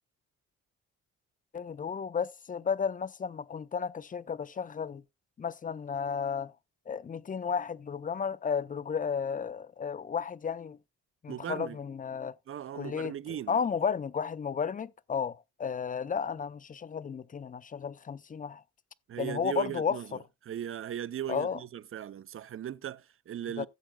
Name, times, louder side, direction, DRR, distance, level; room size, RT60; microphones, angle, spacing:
voice 1, 1.5-5.0 5.4-6.5 6.9-10.8 11.2-12.4 12.7-13.1 13.5-18.6 19.2-20.2 21.3-21.6 23.6-23.7, left 6 dB, 25° left, 0.6 m, -33 dB
voice 2, 11.3-11.8 12.5-13.6 19.1-23.7, right 10 dB, 45° right, 0.6 m, -38 dB
16.5 x 7.6 x 2.2 m
cardioid pair, 90°, 30 cm